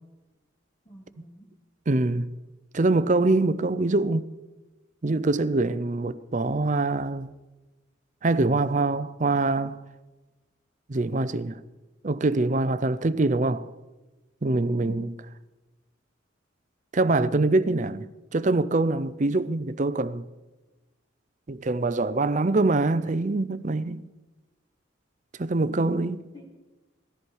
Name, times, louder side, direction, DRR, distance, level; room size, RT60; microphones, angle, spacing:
voice 1, 0.9-1.5 14.8-15.1 25.6-26.5, right 1 dB, 25° left, 2.1 m, -44 dB
voice 2, 1.9-2.3 2.7-4.3 5.0-7.3 8.2-9.8 10.9-11.6 12.0-13.7 14.4-15.1 16.9-20.3 21.5-24.0 25.4-26.2, right 2 dB, 40° right, 0.5 m, -24 dB
18.0 x 14.0 x 4.6 m
head